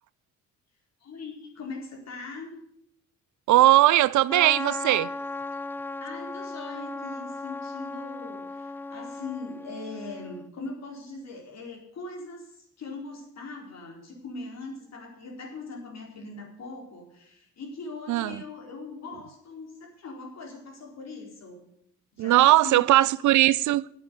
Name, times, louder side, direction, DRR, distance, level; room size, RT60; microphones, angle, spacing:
voice 1, 1.0-2.5 6.0-21.7 22.1-23.0, left 3 dB, 60° left, 4.5 m, -41 dB
voice 2, 3.5-5.1 18.1-18.4 22.2-23.9, right 15 dB, 70° right, 0.6 m, -19 dB
Trumpet, 4.3-10.5, left 3 dB, 5° left, 0.4 m, -36 dB
9.0 x 8.8 x 9.3 m
cardioid pair, 90°, 30 cm